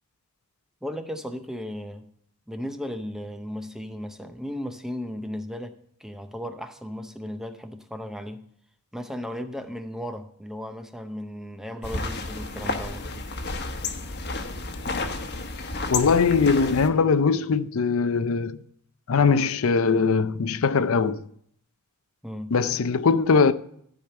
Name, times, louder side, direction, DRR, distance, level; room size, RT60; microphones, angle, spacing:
voice 1, 0.8-2.1 2.5-8.5 8.9-13.1 22.2-22.6, equal, ahead, 0.6 m, -35 dB
sound 1, 11.8-16.9, left 3 dB, 45° left, 1.1 m, -31 dB
voice 2, 15.9-18.6 19.1-21.2 22.5-23.5, left 5 dB, 65° left, 0.5 m, -21 dB
13.5 x 5.1 x 6.7 m
head